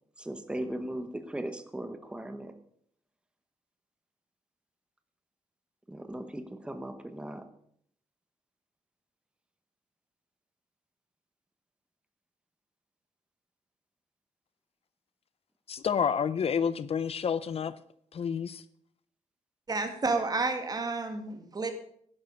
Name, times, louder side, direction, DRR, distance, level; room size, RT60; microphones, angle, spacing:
voice 1, 0.2-2.5 5.9-7.5, right 1 dB, 10° right, 1.0 m, -38 dB
voice 2, 15.7-17.7 18.1-18.6, left 7 dB, 50° left, 0.5 m, -29 dB
voice 3, 19.7-21.7, right 3 dB, 30° right, 1.8 m, -30 dB
11.0 x 11.0 x 5.3 m
wide cardioid pair, 140°, 13 cm